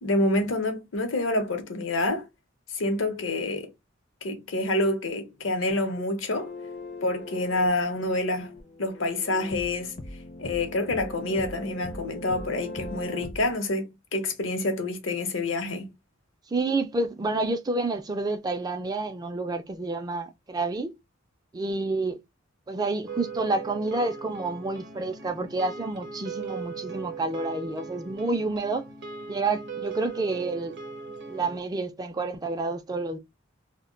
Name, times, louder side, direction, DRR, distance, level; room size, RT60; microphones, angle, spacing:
voice 1, 0.0-2.3 2.7-3.7 4.2-6.5 7.0-8.5 8.8-9.9 10.4-15.9, left 2 dB, 75° left, 0.7 m, -27 dB
sound 1, 6.3-13.6, left 2 dB, 40° left, 0.5 m, -40 dB
voice 2, 16.5-20.9 21.5-22.2 22.7-28.9 29.3-30.7 31.3-33.2, right 3 dB, 20° right, 0.3 m, -29 dB
sound 2, 23.1-31.6, right 5 dB, 60° right, 0.6 m, -39 dB
2.1 x 2.1 x 3.6 m
head